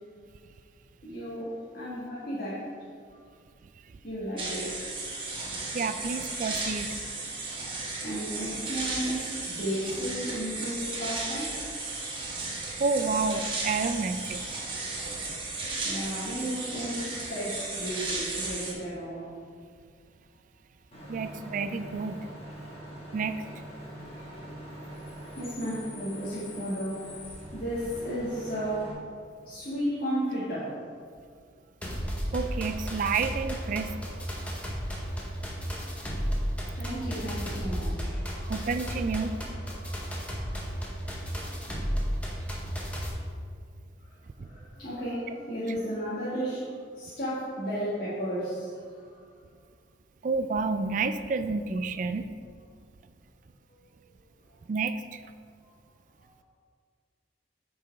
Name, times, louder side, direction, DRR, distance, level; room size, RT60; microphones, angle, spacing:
voice 1, 1.0-2.7 3.1-3.4 4.0-5.5 6.5-7.4 8.0-12.8 14.6-19.4 21.3-21.4 22.8-22.9 24.1-24.4 25.4-27.1 27.5-29.1 29.4-30.8 35.1-35.2 36.7-38.6 39.8-40.5 44.0-49.3 53.7-53.9 54.5-54.6 55.6-55.7 56.2-56.4, equal, 55° left, -10 dB, 1.8 m, -35 dB
sound 1, 4.4-18.7, right 3 dB, 30° right, 1.2 m, -35 dB
voice 2, 5.7-6.9 12.8-14.4 21.1-22.2 23.1-23.4 32.3-34.0 38.5-39.4 44.4-44.5 50.2-52.3 54.7-55.2, right 4 dB, 45° right, 10 dB, 0.3 m, -29 dB
Bus / Idling / Screech, 20.9-28.9, equal, 35° left, 1.4 m, -43 dB
sound 2, 31.8-43.1, equal, 10° left, 0.8 m, -33 dB
8.6 x 4.8 x 3.5 m, 2.1 s
head